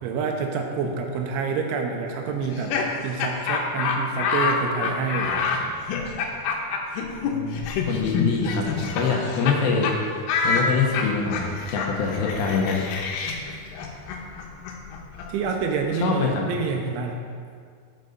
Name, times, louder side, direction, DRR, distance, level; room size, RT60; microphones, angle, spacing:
voice 1, 0.0-2.8 3.0-5.7 15.3-17.2, right 5 dB, 85° right, 2 dB, 3.2 m, -28 dB
Laughter, 2.4-9.6 9.8-10.0 10.3-16.0, left 5 dB, 90° left, 3.6 m, -27 dB
voice 2, 7.2-7.6 7.9-9.9 10.4-12.9 16.0-16.4, left 5 dB, 75° left, -1 dB, 2.9 m, -24 dB
13.0 x 7.7 x 4.0 m, 2.1 s
omnidirectional pair, 5.5 m